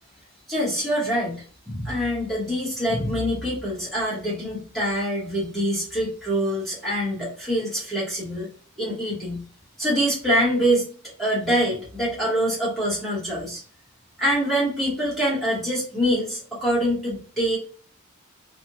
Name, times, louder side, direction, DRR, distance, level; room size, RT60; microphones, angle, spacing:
voice 1, 0.5-8.5 8.8-9.4 9.8-10.8 11.2-13.6 14.2-17.6, equal, ahead, -7 dB, 0.8 m, -25 dB
2.7 x 2.1 x 2.4 m, 0.42 s
head